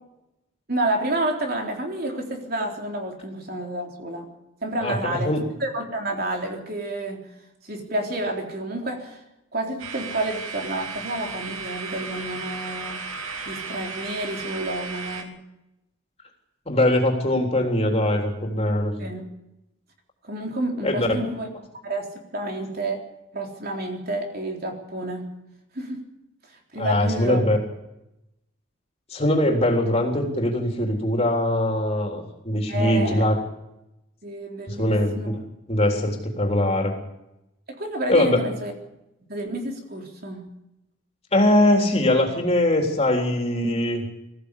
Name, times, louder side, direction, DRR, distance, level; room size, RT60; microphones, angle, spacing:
voice 1, 0.7-4.3 4.6-7.3 7.6-9.2 9.5-13.0 13.4-15.4 19.0-19.2 20.2-21.5 21.8-23.0 23.3-25.3 25.7-26.0 26.7-27.5 32.7-33.2 34.2-35.3 37.7-38.7 39.3-40.5, right 1 dB, 45° right, 2 dB, 3.8 m, -29 dB
voice 2, 4.8-5.4 16.7-18.9 20.8-21.3 26.8-27.6 29.1-33.4 34.7-35.3 35.7-36.9 38.1-38.4 41.3-44.0, left 1 dB, 30° left, 2 dB, 3.6 m, -22 dB
sound 1, 9.8-15.2, right 4 dB, 80° right, 2.9 m, -35 dB
21.5 x 15.5 x 8.4 m, 0.89 s
head